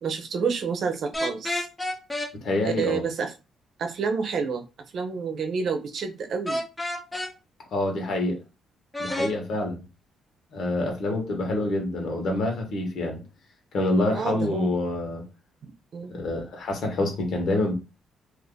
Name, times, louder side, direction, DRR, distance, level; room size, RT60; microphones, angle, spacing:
voice 1, 0.0-1.7 2.6-3.3 3.8-4.6 4.9-6.6 14.1-14.7 15.6-16.2, right 5 dB, 60° right, 0.7 m, -29 dB
sound 1, 1.1-2.3 6.5-7.3 8.9-9.3, left 1 dB, 15° left, 0.8 m, -29 dB
voice 2, 2.4-3.0 7.7-8.4 9.0-9.8 10.5-13.2 13.7-15.2 16.1-17.7, left 2 dB, 65° left, 1.2 m, -26 dB
2.6 x 2.6 x 3.8 m
cardioid pair, 90°, 0 cm